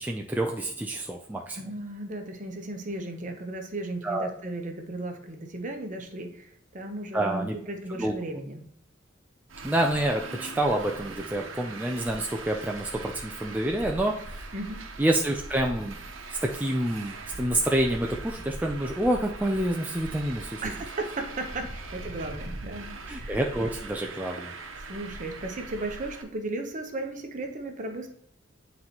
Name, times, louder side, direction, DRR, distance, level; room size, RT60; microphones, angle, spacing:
voice 1, 0.0-1.6 4.0-4.3 7.1-7.5 8.0-8.1 9.6-14.4 15.0-16.0 16.4-20.6 23.1-24.5, right 1 dB, 10° right, 0 dB, 0.4 m, -28 dB
voice 2, 1.5-8.6 14.2-14.3 14.5-14.9 20.6-23.5 24.9-28.1, right 2 dB, 40° right, 4 dB, 0.9 m, -35 dB
Traffic noise roadway noise, 9.5-26.2, right 3 dB, 85° right, 0.9 m, -41 dB
9.5 x 4.0 x 2.9 m, 0.67 s
head